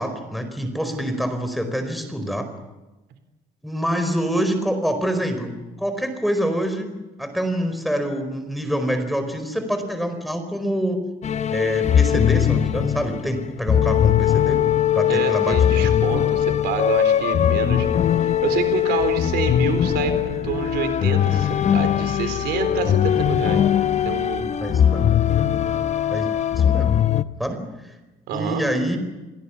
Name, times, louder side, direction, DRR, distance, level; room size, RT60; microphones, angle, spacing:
voice 1, 0.0-2.5 3.6-6.9 7.2-11.0 11.5-14.6 14.9-15.9 24.6-25.1 26.1-26.3 26.5-26.9 27.4-27.9 28.3-29.0, equal, ahead, 7 dB, 4.7 m, -26 dB
sound 1, 11.2-27.2, left 10 dB, 40° left, 0.9 m, -20 dB
voice 2, 15.1-23.6 24.0-24.5 28.3-28.6, right 8 dB, 80° right, 8 dB, 3.9 m, -28 dB
sound 2, 19.0-27.1, left 8 dB, 65° left, 2.2 m, -38 dB
28.0 x 17.5 x 7.2 m, 1.1 s
cardioid pair, 110°, 17 cm